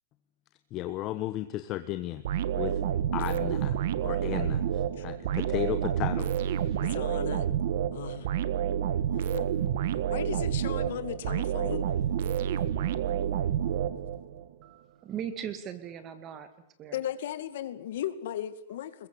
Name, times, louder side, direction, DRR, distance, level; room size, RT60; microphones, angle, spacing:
voice 1, 0.7-2.8 3.1-6.8, left 14 dB, 30° left, 10 dB, 1.1 m, -35 dB
sound 1, 2.2-14.4, right 9 dB, 55° right, 1.6 m, -29 dB
voice 2, 6.8-7.5 7.9-8.3 9.1-9.5 10.1-11.9 16.9-19.1, left 11 dB, 60° left, 12 dB, 2.2 m, -36 dB
voice 3, 14.6-16.5 16.8-17.0, right 8 dB, 25° right, 11 dB, 2.3 m, -38 dB
22.0 x 21.0 x 8.5 m, 0.74 s
supercardioid pair, 165°, 0 cm